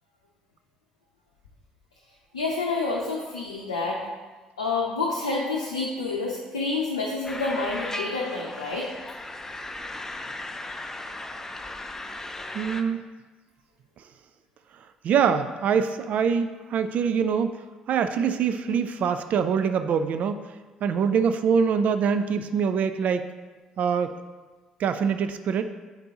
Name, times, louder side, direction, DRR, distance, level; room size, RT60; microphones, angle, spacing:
voice 1, 2.3-4.0 4.6-8.9, left 3 dB, 90° left, -3 dB, 0.6 m, -28 dB
sound 1, 7.2-12.8, left 2 dB, 15° left, 0.5 m, -36 dB
voice 2, 12.5-13.0 15.0-17.5 17.9-20.4 20.8-23.3 23.8-24.1 24.8-25.6, right 6 dB, 55° right, 9 dB, 0.3 m, -24 dB
7.2 x 5.1 x 2.9 m, 1.3 s
hypercardioid pair, 50°, 3 cm